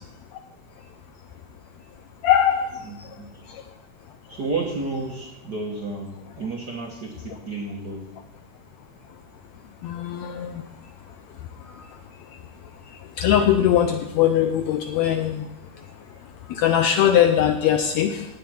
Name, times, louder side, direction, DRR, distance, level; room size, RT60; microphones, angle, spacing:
voice 1, 2.2-2.7 9.8-10.6 13.2-15.4 16.5-18.3, left 10 dB, 80° left, 7 dB, 1.6 m, -20 dB
voice 2, 2.8-3.4 4.3-8.1, right 3 dB, 55° right, -2 dB, 1.1 m, -31 dB
17.5 x 7.3 x 4.3 m, 0.94 s
omnidirectional pair, 3.7 m